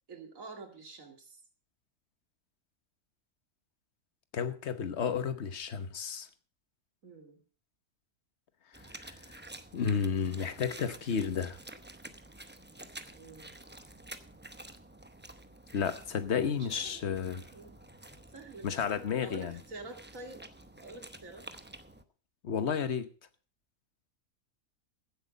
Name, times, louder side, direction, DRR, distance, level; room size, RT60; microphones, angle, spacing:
voice 1, 0.1-1.4 7.0-7.4 13.1-13.5 16.6-17.1 17.5-17.7 18.3-20.4 20.8-21.5, right 3 dB, 65° right, 2.7 m, -48 dB
voice 2, 4.3-6.3 9.0-9.1 9.7-11.6 15.7-17.4 18.6-19.6 22.4-23.1, left 7 dB, 50° left, 1.2 m, -32 dB
sound 1, 8.7-22.0, right 1 dB, 10° right, 0.6 m, -50 dB
15.5 x 8.2 x 5.2 m
omnidirectional pair, 1.5 m